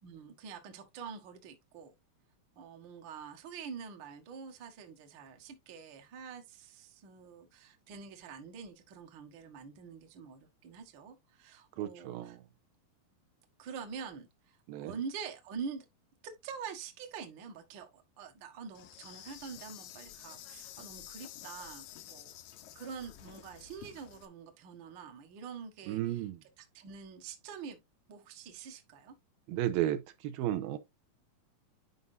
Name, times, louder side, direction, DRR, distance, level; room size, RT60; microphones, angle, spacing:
voice 1, 0.0-1.9 2.5-12.4 13.6-15.8 16.4-22.3 22.7-26.3 26.6-27.8 28.1-29.1, right 6 dB, 60° right, 1.2 m, -46 dB
voice 2, 11.8-12.4 14.7-14.9 25.9-26.4 29.5-30.8, right 12 dB, 80° right, 2.4 m, -33 dB
Insect, 18.7-24.3, left 12 dB, 90° left, 1.6 m, -50 dB
9.5 x 5.3 x 2.6 m
omnidirectional pair, 4.3 m